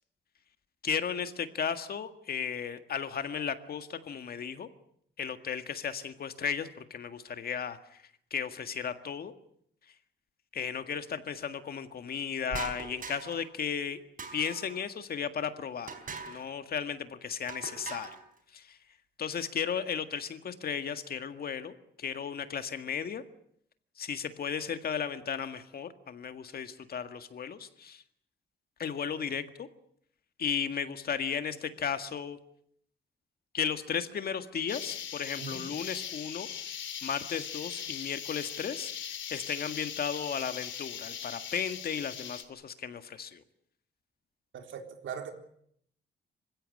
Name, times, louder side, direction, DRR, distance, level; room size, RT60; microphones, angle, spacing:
voice 1, 0.8-4.7 5.2-8.0 8.3-9.3 10.5-14.0 14.3-15.9 16.3-18.1 18.5-18.8 19.2-23.2 24.0-28.0 28.8-29.7 30.4-32.4 33.5-36.5 37.0-38.9 39.3-43.4, left 7 dB, 55° left, 9 dB, 1.9 m, -35 dB
sound 1, 12.5-13.5 14.2-14.8 15.9-16.5 17.5-18.2, right 4 dB, 45° right, 4.4 m, -41 dB
sound 2, 34.7-42.4, left 8 dB, 80° left, 3.1 m, -40 dB
voice 2, 44.5-45.3, right 7 dB, 85° right, 5 dB, 3.9 m, -40 dB
27.0 x 16.0 x 9.9 m, 0.69 s
wide cardioid pair, 145°, 19 cm